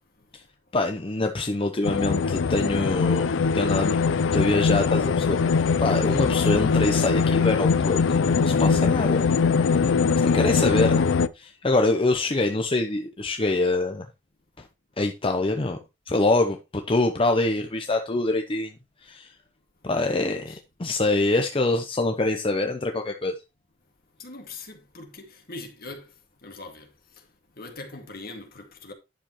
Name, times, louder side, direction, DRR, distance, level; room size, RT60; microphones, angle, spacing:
voice 1, 0.2-0.5 6.1-6.2 20.2-20.6 24.2-28.9, left 2 dB, 50° left, 2.0 m, -42 dB
voice 2, 0.7-3.3 3.5-4.0 4.3-5.3 5.8-9.2 10.2-11.0 11.3-14.1 15.0-15.8 16.1-18.7 19.0-19.3 19.8-20.5 20.8-23.3, left 2 dB, 30° left, 0.7 m, -24 dB
sound 1, 1.8-11.3, left 5 dB, 75° left, 0.4 m, -22 dB
10.0 x 6.9 x 3.0 m
head